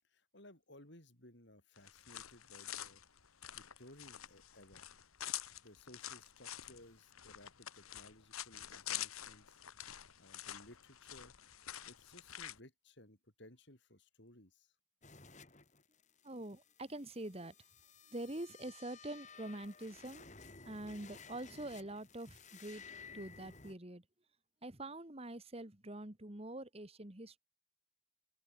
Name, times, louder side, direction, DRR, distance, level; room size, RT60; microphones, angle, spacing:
voice 1, 0.1-3.0 3.5-4.9 5.6-9.6 10.2-11.3 11.8-14.7, left 1 dB, 55° left, 6.3 m, -59 dB
sound 1, 1.8-12.6, left 12 dB, 85° left, 1.8 m, -47 dB
sound 2, 15.0-23.7, left 5 dB, 35° left, 5.8 m, -56 dB
voice 2, 16.2-17.5 18.1-20.3 20.6-22.8 23.1-24.0 24.6-27.4, right 1 dB, 30° right, 1.7 m, -45 dB
open air
head